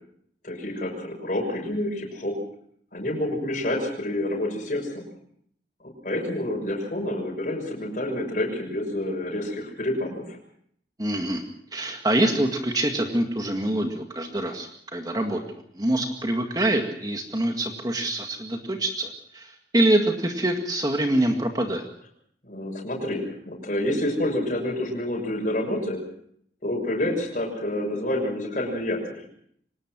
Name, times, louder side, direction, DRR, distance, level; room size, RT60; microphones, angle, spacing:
voice 1, 0.4-2.3 2.9-5.0 6.0-10.4 22.4-26.0 26.6-29.1, left 1 dB, 45° left, -1 dB, 6.3 m, -28 dB
voice 2, 11.0-11.4 11.7-15.4 15.7-21.9, right 1 dB, 20° right, 4 dB, 2.0 m, -25 dB
24.5 x 19.5 x 6.2 m, 0.65 s
head